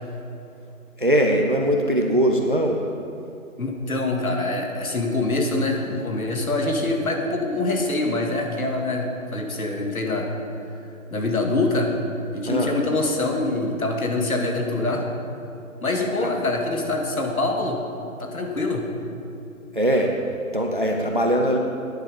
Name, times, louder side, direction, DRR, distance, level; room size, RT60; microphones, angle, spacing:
voice 1, 1.0-2.8 12.5-12.7 16.2-16.3 19.7-20.1 20.5-21.6, equal, 35° right, 2 dB, 0.6 m, -21 dB
voice 2, 3.6-10.3 11.1-11.9 12.3-15.1 15.8-17.8 18.2-18.8, left 2 dB, 75° left, 2 dB, 2.1 m, -24 dB
10.5 x 10.0 x 5.2 m, 2.7 s
figure-of-eight pair, 175°, 43 cm